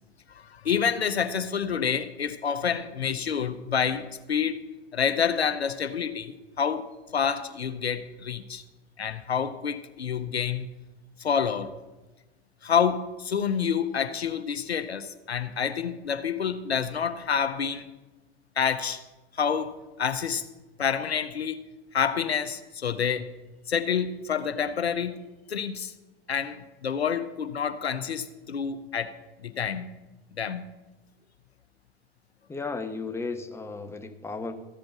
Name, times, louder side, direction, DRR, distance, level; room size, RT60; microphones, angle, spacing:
voice 1, 0.4-4.6 4.9-8.6 9.0-10.7 11.2-11.7 12.6-17.9 18.6-19.0 19.3-20.4 20.8-21.6 21.9-23.3 23.7-25.2 25.5-25.9 26.3-29.1 29.4-29.8 30.4-30.6, left 7 dB, 85° left, 0.7 m, -28 dB
voice 2, 32.5-34.6, left 4 dB, 10° left, 1.0 m, -34 dB
14.5 x 5.2 x 7.0 m
figure-of-eight pair, 80°, 31 cm